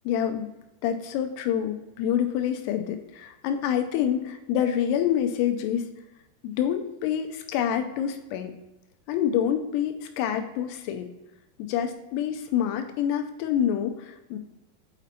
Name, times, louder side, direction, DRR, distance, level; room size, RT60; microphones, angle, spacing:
voice 1, 0.1-0.5 0.8-5.9 6.4-8.5 9.1-11.1 11.6-14.4, left 9 dB, 85° left, 6 dB, 2.7 m, -27 dB
8.1 x 4.2 x 4.1 m, 1.0 s
omnidirectional pair, 4.7 m